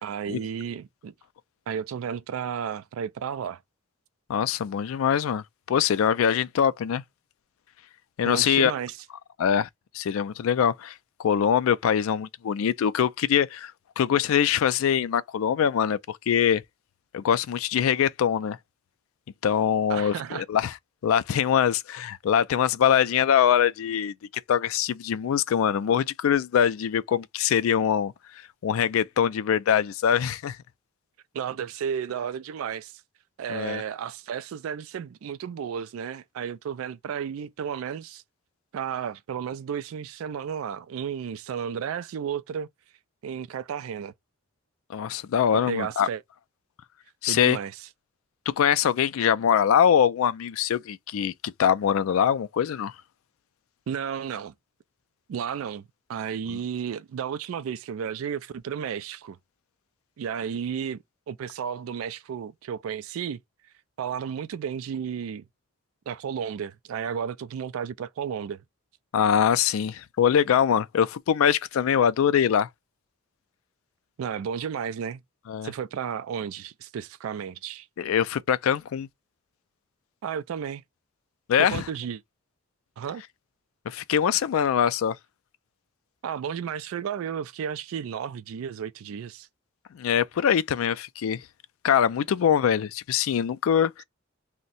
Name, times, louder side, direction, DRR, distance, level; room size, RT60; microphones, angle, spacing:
voice 1, 0.0-1.1 1.7-3.6 8.2-9.0 19.9-20.4 31.3-32.9 33.4-38.2 38.7-42.7 43.2-44.1 45.7-46.2 47.3-47.7 53.9-54.5 55.3-59.4 60.2-63.4 64.0-65.5 66.1-68.6 74.2-75.2 75.6-77.9 80.2-80.8 81.6-82.2 83.0-83.2 86.2-89.5, right 7 dB, 85° right, 0.3 m, -33 dB
voice 2, 4.3-7.0 8.2-8.7 9.4-9.7 9.9-16.6 17.1-18.6 19.4-20.8 21.0-24.1 24.5-30.6 33.5-33.8 44.9-46.1 47.2-47.6 48.5-52.9 56.5-56.6 69.1-72.7 75.5-75.7 78.0-79.1 81.5-81.8 83.9-85.2 89.9-91.4 91.8-94.0, left 8 dB, 80° left, 0.3 m, -23 dB
2.6 x 2.1 x 3.9 m
head